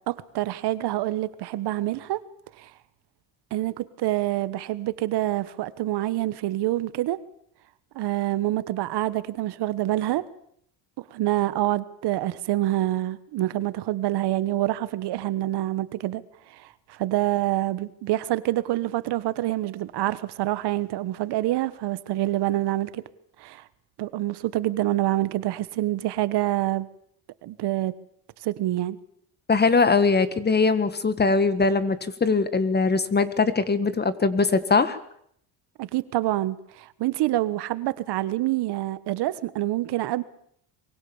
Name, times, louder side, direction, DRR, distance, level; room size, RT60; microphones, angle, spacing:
voice 1, 0.1-2.2 2.6-2.7 3.5-7.2 7.9-10.2 11.0-16.2 16.5-23.0 23.4-23.6 24.0-26.9 27.4-27.9 28.4-29.0 35.8-40.2, right 15 dB, 70° right, 1.3 m, -26 dB
voice 2, 29.5-35.0, left 4 dB, 25° left, 1.7 m, -21 dB
24.0 x 23.0 x 7.2 m
cardioid pair, 130°, 42 cm